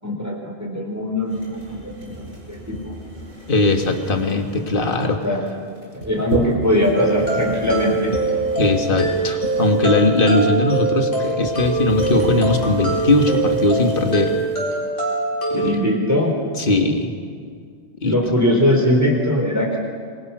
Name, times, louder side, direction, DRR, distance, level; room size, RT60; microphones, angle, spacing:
voice 1, 0.0-2.9 5.2-5.4 6.0-8.2 15.5-16.4 18.0-19.8, left 1 dB, 15° right, -1 dB, 4.3 m, -21 dB
sound 1, 1.3-14.6, right 1 dB, 65° right, 6.9 m, -34 dB
voice 2, 3.5-5.2 8.6-14.3 15.5-15.8 16.6-17.1 18.0-18.2, left 2 dB, 45° left, 4 dB, 2.0 m, -19 dB
sound 2, 6.9-15.7, right 3 dB, 75° left, 5.1 m, -23 dB
26.5 x 22.5 x 6.3 m, 2.1 s
omnidirectional pair, 1.3 m